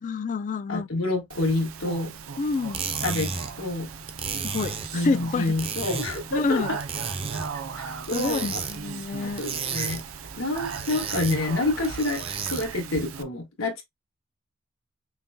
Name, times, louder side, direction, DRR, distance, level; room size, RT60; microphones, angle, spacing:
voice 1, 0.0-0.9 2.4-2.8 4.4-5.6 6.3-6.8 8.1-9.4, left 4 dB, 40° left, 0.3 m, -28 dB
voice 2, 0.7-2.1 3.0-3.9 4.9-6.8 7.8-8.6 9.4-10.0 10.3-13.8, left 2 dB, 75° left, 1.5 m, -28 dB
Speech, 1.3-13.2, right 6 dB, 80° right, 0.5 m, -38 dB
sound 1, 2.5-12.9, right 5 dB, 30° right, 0.5 m, -35 dB
5.6 x 2.2 x 2.7 m
head